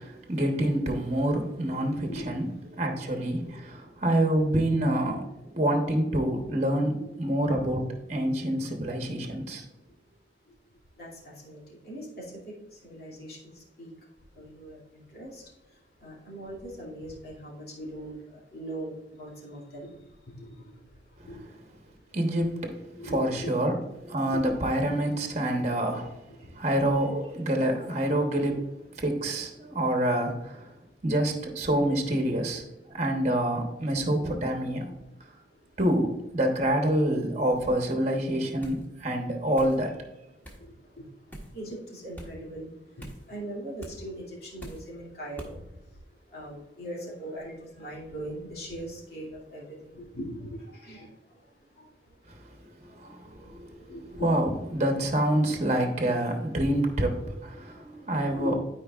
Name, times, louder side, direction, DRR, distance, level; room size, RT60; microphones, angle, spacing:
voice 1, 0.0-2.5 2.8-5.2 5.6-9.6 22.1-22.8 23.1-23.8 24.1-26.1 26.6-28.7 29.0-30.7 31.0-32.6 32.9-34.9 35.8-39.9 52.9-53.8 54.2-58.6, right 1 dB, 35° right, 3 dB, 1.0 m, -27 dB
voice 2, 1.8-2.2 2.8-2.9 5.1-5.2 7.1-7.2 11.0-12.2 12.8-13.4 13.8-13.9 14.4-15.4 16.0-18.1 18.5-19.9 20.4-20.5 21.3-21.4 23.0-23.5 41.5-42.7 43.3-45.6 46.3-51.0 53.0-53.1 53.4-53.5 53.9-54.3 58.2-58.6, right 1 dB, 55° left, -5 dB, 2.6 m, -40 dB
sound 1, 38.6-38.9 39.6-39.8 40.4-40.6 41.3-41.5 42.2-42.3 43.0-43.3 43.8-44.0 44.6-44.9 45.4-45.6, right 1 dB, 10° left, 1.3 m, -43 dB
12.5 x 4.9 x 2.4 m, 0.95 s
head